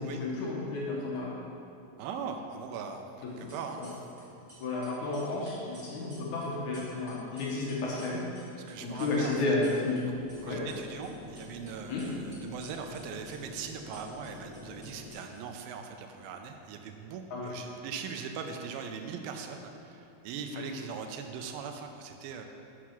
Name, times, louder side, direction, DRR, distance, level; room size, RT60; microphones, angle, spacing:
voice 1, 0.0-1.3 3.4-3.9 4.6-8.2 8.8-10.0 10.4-10.6 11.9-12.0 17.3-17.5 20.5-20.6, left 2 dB, 65° left, -5 dB, 2.2 m, -32 dB
voice 2, 2.0-3.1 3.4-3.8 8.7-10.0 10.4-22.4, right 6 dB, 85° right, 5 dB, 2.4 m, -40 dB
sound 1, 3.3-4.2 4.5-10.0 10.3-11.7 12.0-15.7, equal, 30° right, 0.9 m, -55 dB
sound 2, 10.0-15.1, left 3 dB, 80° left, 2.6 m, -47 dB
6.5 x 6.0 x 5.8 m, 2.7 s
omnidirectional pair, 4.1 m